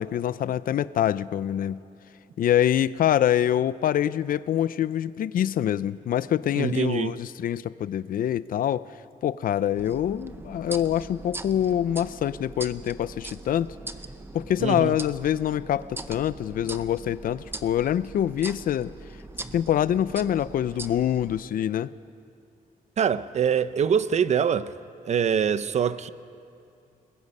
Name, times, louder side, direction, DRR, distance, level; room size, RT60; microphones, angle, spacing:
voice 1, 0.0-1.8 2.4-8.9 9.2-13.7 14.3-18.9 19.5-21.9, left 10 dB, 70° left, 0.5 m, -25 dB
voice 2, 6.6-7.2 14.6-14.9 23.0-24.7 25.0-26.1, right 7 dB, 50° right, 0.6 m, -24 dB
sound 1, 9.8-21.4, right 2 dB, 15° right, 0.7 m, -41 dB
30.0 x 21.0 x 5.4 m
wide cardioid pair, 145°, 15 cm